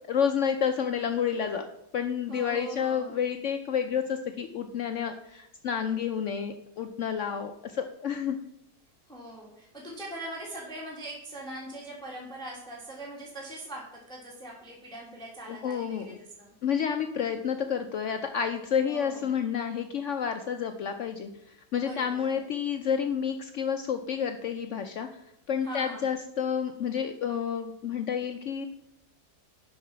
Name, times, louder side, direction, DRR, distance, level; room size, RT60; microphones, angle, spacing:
voice 1, 0.1-1.7 1.9-8.4 15.5-16.2 16.6-25.1 25.5-28.7, left 7 dB, 70° left, 7 dB, 0.7 m, -30 dB
voice 2, 2.3-3.2 9.1-16.5 18.8-19.3 21.8-22.3 25.6-26.1, right 1 dB, 5° left, -3 dB, 1.5 m, -42 dB
7.4 x 5.6 x 5.7 m, 0.80 s
omnidirectional pair, 1.8 m